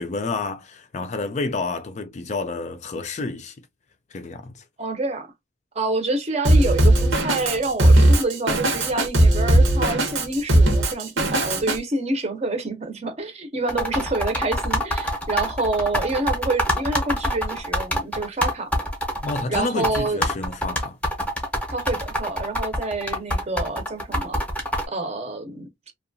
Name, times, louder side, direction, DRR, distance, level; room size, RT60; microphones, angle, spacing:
voice 1, 0.0-3.5 4.1-4.6 19.2-21.0, left 3 dB, 35° left, 0.4 m, -29 dB
voice 2, 4.8-5.3 5.7-18.7 19.5-20.3 21.7-24.4 24.9-25.9, right 2 dB, 35° right, 0.7 m, -27 dB
Drum kit, 6.4-11.8, right 1 dB, 80° right, 0.9 m, -18 dB
sound 1, 13.7-24.9, equal, 5° left, 0.7 m, -25 dB
2.7 x 2.3 x 2.5 m
head